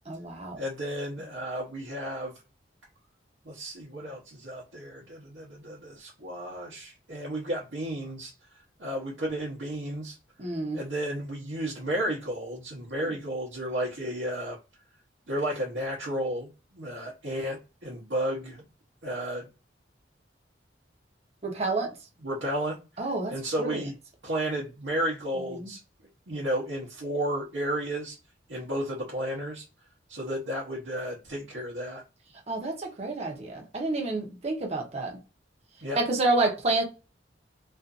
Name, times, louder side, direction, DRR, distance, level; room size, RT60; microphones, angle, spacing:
voice 1, 0.1-0.6 10.4-10.8 13.0-13.1 21.4-21.9 23.0-23.3 23.6-23.8 25.6-25.7 32.5-35.1 35.9-36.8, right 2 dB, 35° right, 0 dB, 0.8 m, -29 dB
voice 2, 0.6-2.3 3.4-8.3 8.8-10.2 10.7-14.6 15.3-18.6 19.0-19.5 22.2-23.9 24.2-25.8 26.3-28.1 28.5-29.6 30.1-32.0 35.8-36.0, right 1 dB, 70° right, -4 dB, 0.8 m, -33 dB
2.5 x 2.4 x 2.5 m, 0.29 s
head